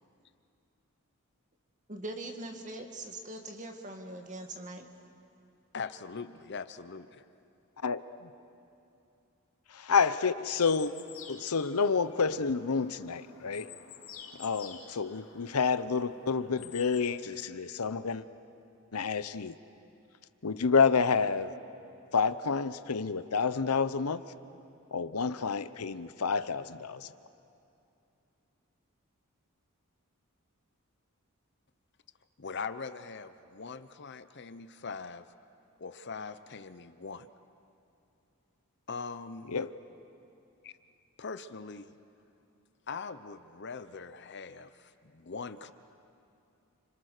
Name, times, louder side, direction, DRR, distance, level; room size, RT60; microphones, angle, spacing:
voice 1, 1.9-4.9, right 1 dB, 35° right, 4 dB, 2.2 m, -41 dB
voice 2, 5.7-7.2 32.4-35.2 35.8-37.3 38.9-39.6 40.6-40.7 41.2-41.9 42.9-45.7, left 5 dB, 50° left, 12 dB, 0.8 m, -41 dB
voice 3, 9.7-10.9 11.3-13.7 14.4-18.2 18.9-19.5 20.4-21.5 22.1-24.2 24.9-27.1 39.5-39.7, left 5 dB, 90° left, 13 dB, 0.8 m, -29 dB
sound 1, 10.5-17.1, left 7 dB, 70° left, 2.7 m, -51 dB
30.0 x 26.5 x 6.7 m, 2.7 s
head